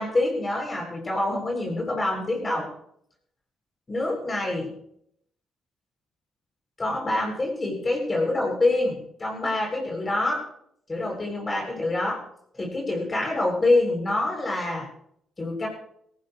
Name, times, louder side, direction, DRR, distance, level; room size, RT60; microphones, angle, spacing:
voice 1, 0.0-2.7 3.9-4.7 6.8-10.4 10.9-12.2 12.5-14.9 15.4-15.7, left 2 dB, 25° left, 0 dB, 7.8 m, -26 dB
18.5 x 18.0 x 3.3 m, 0.70 s
cardioid pair, 90°, 0 cm